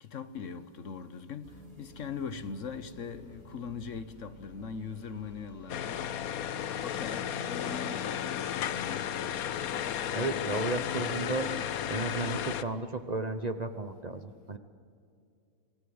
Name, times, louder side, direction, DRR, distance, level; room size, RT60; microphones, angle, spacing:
voice 1, 0.0-6.1 6.4-9.2, left 6 dB, 65° left, 1.3 m, -41 dB
sound 1, 1.4-7.2, right 2 dB, 75° right, 2.5 m, -54 dB
sound 2, 1.5-13.1, right 1 dB, 5° left, 5.4 m, -55 dB
sound 3, 5.7-12.6, left 10 dB, 85° left, 1.3 m, -34 dB
voice 2, 10.1-11.5 11.9-14.6, right 3 dB, 35° right, 0.9 m, -34 dB
25.0 x 19.5 x 7.9 m
omnidirectional pair, 1.5 m